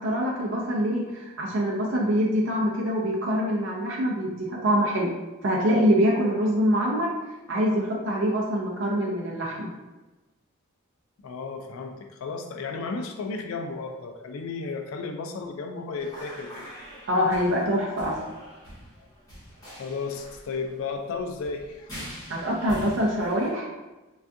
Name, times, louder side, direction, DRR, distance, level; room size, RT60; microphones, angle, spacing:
voice 1, 0.0-5.1 5.4-7.1 7.5-9.7 17.1-18.2 22.3-23.7, equal, 60° right, -3 dB, 0.4 m, -24 dB
voice 2, 11.2-16.7 19.8-21.9, left 4 dB, 75° left, 5 dB, 0.3 m, -34 dB
sound 1, 16.0-23.5, equal, 15° left, 1.2 m, -44 dB
3.3 x 2.3 x 2.6 m, 1.1 s
head